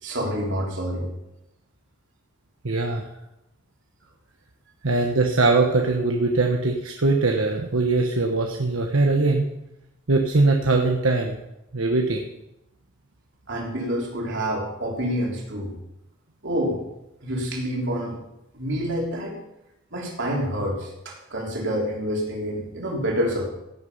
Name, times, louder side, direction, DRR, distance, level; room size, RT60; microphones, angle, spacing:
voice 1, 0.0-1.1 13.5-15.7 16.4-16.8 17.2-18.2 18.5-19.4 19.9-23.5, equal, 60° right, -1 dB, 3.6 m, -27 dB
voice 2, 2.6-3.0 4.8-9.5 10.1-11.4 11.7-12.2, right 3 dB, 80° right, 2 dB, 1.2 m, -21 dB
16.0 x 8.3 x 5.5 m, 0.90 s
head